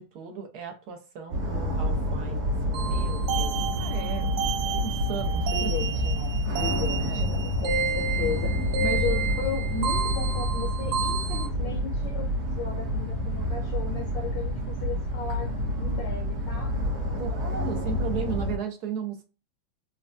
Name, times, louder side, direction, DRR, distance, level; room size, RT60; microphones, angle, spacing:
voice 1, 0.0-4.3 4.7-5.7 7.0-7.2 17.2-19.2, right 6 dB, 65° right, 1.0 m, -36 dB
sound 1, 1.3-18.6, equal, 45° right, 1.0 m, -28 dB
sound 2, 2.7-11.5, right 5 dB, 90° right, 1.5 m, -31 dB
voice 2, 5.4-15.5 15.8-16.7, left 6 dB, 70° left, 1.2 m, -35 dB
4.2 x 2.2 x 2.5 m
omnidirectional pair, 2.2 m